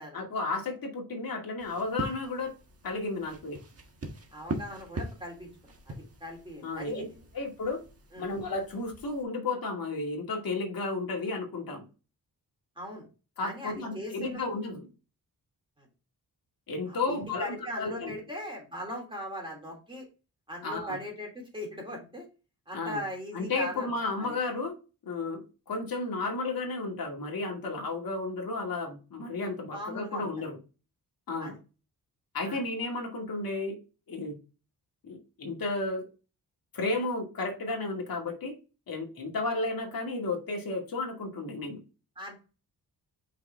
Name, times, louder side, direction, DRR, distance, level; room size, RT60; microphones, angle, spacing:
voice 1, 0.1-2.5 2.8-3.6 6.6-7.1 7.3-7.8 8.2-11.9 13.4-14.9 16.7-18.1 20.6-21.0 22.7-23.0 23.3-24.7 25.0-30.6 31.3-31.5 32.3-33.8 34.1-34.4 35.0-36.1 36.7-38.6 38.9-41.8, left 3 dB, 65° left, 1 dB, 2.4 m, -33 dB
sound 1, 1.6-9.2, right 2 dB, 40° right, 1.4 m, -42 dB
voice 2, 4.3-5.9 6.2-7.1 8.1-8.3 12.8-13.0 13.4-14.4 15.8-15.9 16.9-20.1 20.5-22.3 22.7-23.9 24.2-24.4 29.7-30.3 31.4-31.5 32.4-32.6 42.2-42.4, equal, 15° right, 0 dB, 3.1 m, -39 dB
5.7 x 4.8 x 3.5 m, 0.31 s
wide cardioid pair, 110°, 38 cm